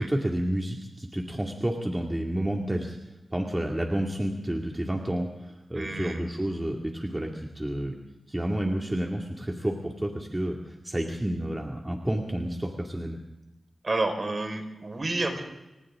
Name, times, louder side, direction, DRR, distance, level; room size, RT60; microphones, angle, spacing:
voice 1, 0.0-3.0 3.3-7.9 8.3-13.2, right 1 dB, 15° right, 0 dB, 2.4 m, -30 dB
voice 2, 5.7-6.2 13.8-15.4, right 2 dB, 35° right, 4 dB, 5.0 m, -29 dB
29.0 x 26.0 x 3.8 m, 1.0 s
wide cardioid pair, 110°, 0 cm